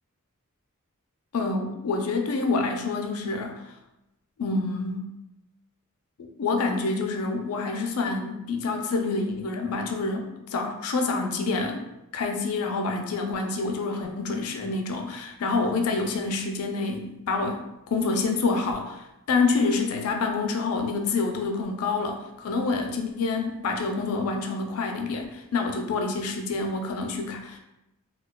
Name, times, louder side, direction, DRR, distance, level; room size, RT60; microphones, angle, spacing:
voice 1, 1.3-3.6 4.4-5.1 6.2-11.8 12.1-27.6, left 3 dB, 75° left, 4 dB, 0.4 m, -27 dB
4.4 x 2.2 x 2.2 m, 0.91 s
head